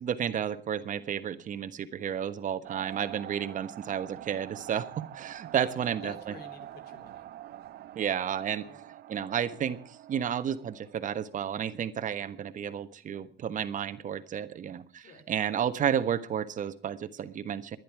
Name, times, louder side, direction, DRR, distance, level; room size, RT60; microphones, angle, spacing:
voice 1, 0.0-6.1 7.9-8.7 9.1-17.8, right 9 dB, 50° right, 11 dB, 1.4 m, -32 dB
sound 1, 2.6-11.6, right 13 dB, 70° right, 1.0 m, -46 dB
voice 2, 5.6-7.3 8.6-8.9 15.0-15.3, left 4 dB, 70° left, 9 dB, 3.6 m, -50 dB
26.5 x 11.0 x 4.8 m, 0.39 s
cardioid pair, 110°, 17 cm